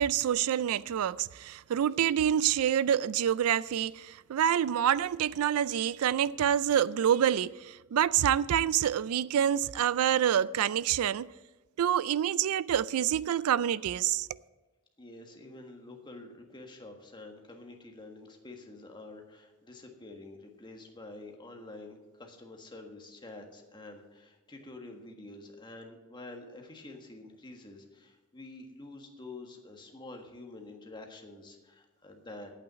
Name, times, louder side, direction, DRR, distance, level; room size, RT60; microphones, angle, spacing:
voice 1, 0.0-11.3 11.8-14.3, right 9 dB, 70° right, 0.3 m, -27 dB
voice 2, 15.0-32.5, left 2 dB, 20° left, 1.5 m, -48 dB
8.7 x 8.7 x 7.7 m
head